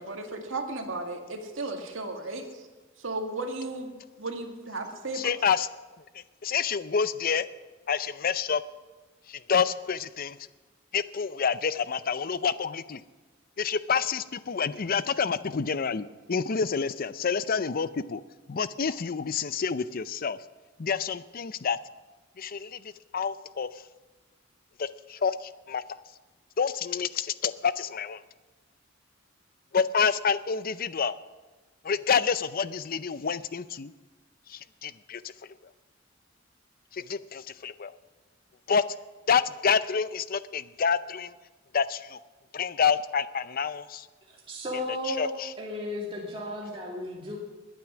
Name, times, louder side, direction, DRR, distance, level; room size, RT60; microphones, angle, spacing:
voice 1, 0.0-2.6 3.0-5.3, right 2 dB, 80° right, 3 dB, 1.9 m, -35 dB
voice 2, 5.1-5.7 6.1-7.5 7.9-8.6 9.3-10.4 10.9-13.0 13.6-18.2 18.5-20.4 20.8-21.8 22.4-22.8 23.1-23.8 24.8-25.8 26.6-28.2 29.7-31.2 31.8-33.9 34.5-35.3 36.9-37.9 38.7-38.8 39.3-41.3 41.7-42.2 42.5-44.1 45.1-45.5, left 6 dB, 50° left, 15 dB, 0.5 m, -28 dB
voice 3, 44.3-45.3 45.6-47.4, left 1 dB, 30° right, -3 dB, 2.2 m, -34 dB
21.0 x 9.2 x 6.2 m, 1.2 s
head